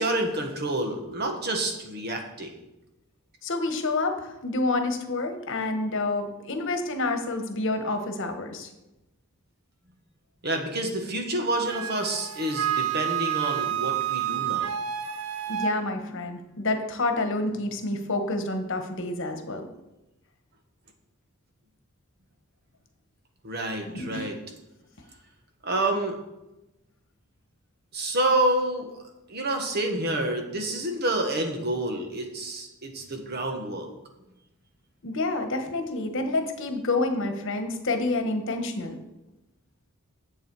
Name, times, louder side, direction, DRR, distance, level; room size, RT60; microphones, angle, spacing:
voice 1, 0.0-2.5 10.4-14.7 23.4-24.4 25.6-26.2 27.9-29.0 29.3-33.9, right 1 dB, 50° right, 4 dB, 1.5 m, -28 dB
voice 2, 3.4-8.7 15.5-19.7 23.8-24.3 35.0-39.0, left 2 dB, 60° left, 6 dB, 1.3 m, -28 dB
Wind instrument woodwind instrument, 11.7-15.8, right 10 dB, 85° right, 0.7 m, -29 dB
10.0 x 7.4 x 4.7 m, 0.96 s
head